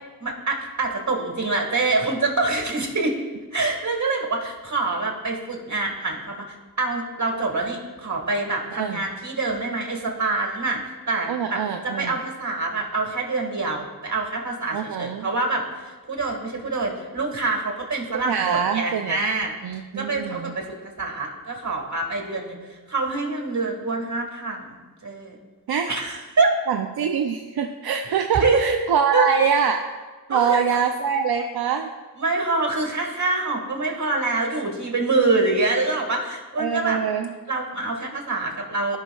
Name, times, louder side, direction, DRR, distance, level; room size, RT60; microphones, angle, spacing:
voice 1, 0.2-3.2 3.5-10.8 11.1-15.6 16.1-19.5 19.9-22.6 22.9-24.8 25.0-25.4 25.9-26.5 28.4-28.8 29.1-29.3 30.3-30.6 32.2-37.0 37.5-39.0, right 3 dB, 50° right, 1 dB, 1.8 m, -25 dB
voice 2, 8.7-9.0 11.3-12.2 14.7-15.3 18.3-19.2 19.6-20.5 25.7-25.9 26.7-29.8 30.3-31.9 36.6-37.3, right 7 dB, 80° right, 4 dB, 0.5 m, -24 dB
14.5 x 5.6 x 2.3 m, 1.3 s
wide cardioid pair, 60°, 38 cm